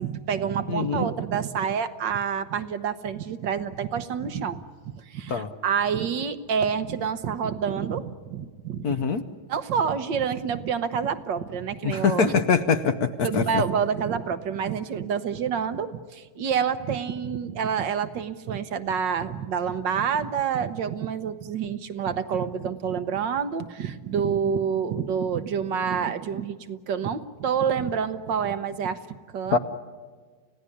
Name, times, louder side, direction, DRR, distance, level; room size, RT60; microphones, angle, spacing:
voice 1, 0.0-4.6 5.1-9.0 9.5-12.4 13.2-29.6, right 7 dB, 65° right, 12 dB, 1.6 m, -28 dB
voice 2, 0.7-1.1 5.3-5.5 8.8-9.2 11.8-13.6 29.5-29.6, left 6 dB, 55° left, 10 dB, 1.2 m, -23 dB
29.5 x 16.5 x 9.9 m, 1.5 s
omnidirectional pair, 2.3 m